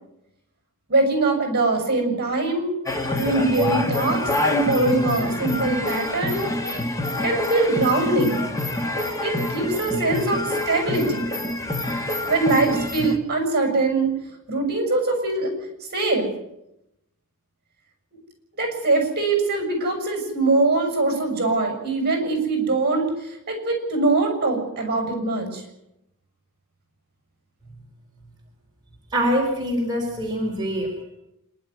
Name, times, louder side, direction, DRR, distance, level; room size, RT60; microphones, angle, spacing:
voice 1, 0.9-2.7 3.1-6.5 7.2-8.5 9.2-11.3 12.3-14.1 14.5-15.5 15.9-16.3 18.5-25.6, right 2 dB, 50° right, 4 dB, 6.9 m, -22 dB
sound 1, 2.9-13.2, left 1 dB, 15° left, 1.9 m, -26 dB
voice 2, 29.1-30.9, equal, 20° right, -2 dB, 4.4 m, -24 dB
26.0 x 12.0 x 9.5 m, 0.87 s
head